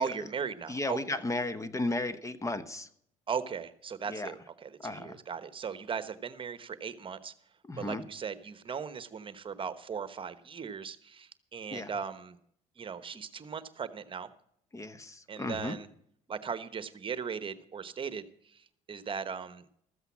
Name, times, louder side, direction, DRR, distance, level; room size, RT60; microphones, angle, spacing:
voice 1, 0.0-1.2 3.3-7.3 7.8-12.4 12.8-14.3 15.3-15.9 16.3-19.6, right 6 dB, 35° right, 13 dB, 1.1 m, -38 dB
voice 2, 0.7-2.9 4.1-4.3 4.8-5.2 7.6-8.0 11.7-11.9 14.7-15.8, left 2 dB, 20° left, 14 dB, 1.0 m, -34 dB
14.0 x 8.0 x 7.2 m, 0.66 s
supercardioid pair, 80°, 14 cm